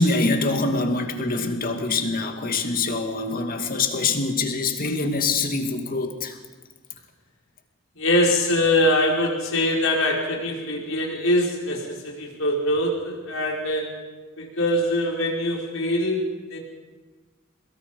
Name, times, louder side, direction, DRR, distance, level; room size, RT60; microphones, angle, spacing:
voice 1, 0.0-6.4, left 3 dB, 45° left, 2.2 m, -24 dB
voice 2, 7.9-14.0 14.4-16.6, left 1 dB, 75° left, 5.1 m, -23 dB
23.5 x 22.0 x 5.4 m
head